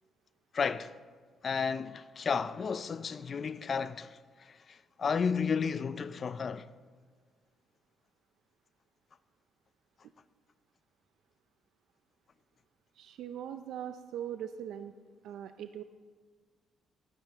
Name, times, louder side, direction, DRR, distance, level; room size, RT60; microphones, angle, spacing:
voice 1, 0.5-1.0 1.4-6.7, left 6 dB, 45° left, 0.4 m, -33 dB
voice 2, 13.0-14.9 15.2-15.8, right 10 dB, 80° right, 0.4 m, -40 dB
20.0 x 9.6 x 3.5 m
cardioid pair, 90°, 0 cm